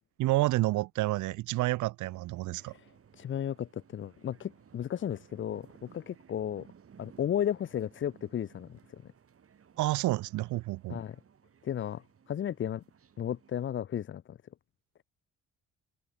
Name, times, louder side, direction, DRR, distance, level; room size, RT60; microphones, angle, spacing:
voice 1, 0.2-2.7 9.8-11.0, right 18 dB, 75° right, 0.5 m, -29 dB
sound 1, 2.0-13.7, right 7 dB, 50° right, 4.2 m, -59 dB
voice 2, 2.6-6.7 7.0-9.1 10.9-11.2 11.6-12.8 13.2-14.4, left 10 dB, 40° left, 0.6 m, -34 dB
open air
cardioid pair, 90°, 30 cm